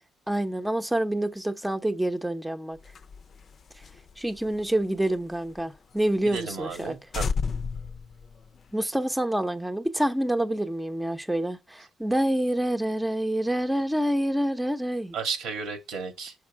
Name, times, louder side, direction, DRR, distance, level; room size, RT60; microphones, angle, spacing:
voice 1, 0.3-2.8 3.8-3.9 4.2-7.0 8.7-15.2, right 1 dB, 5° right, 0.9 m, -27 dB
sound 1, 2.8-5.6 6.0-6.1 6.4-6.5 6.7-6.9 7.1-8.8, left 5 dB, 50° left, 0.7 m, -33 dB
voice 2, 6.2-7.3 15.1-16.3, right 5 dB, 85° right, 2.0 m, -33 dB
6.7 x 6.3 x 4.6 m
cardioid pair, 90°, 0 cm